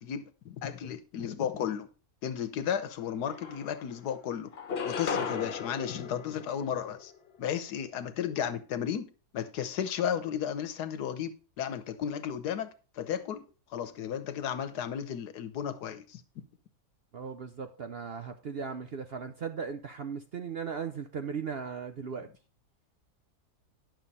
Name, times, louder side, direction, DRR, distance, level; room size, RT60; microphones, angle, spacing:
voice 1, 0.0-1.9 2.2-4.5 4.8-7.1 7.4-9.1 9.3-13.4 13.7-16.2, left 9 dB, 80° left, 1.4 m, -34 dB
sound 1, 2.9-3.0 3.3-4.1 4.5-7.1, left 6 dB, 45° left, 1.0 m, -36 dB
voice 2, 17.1-22.3, right 6 dB, 55° right, 0.7 m, -37 dB
10.5 x 6.5 x 4.1 m
omnidirectional pair, 1.7 m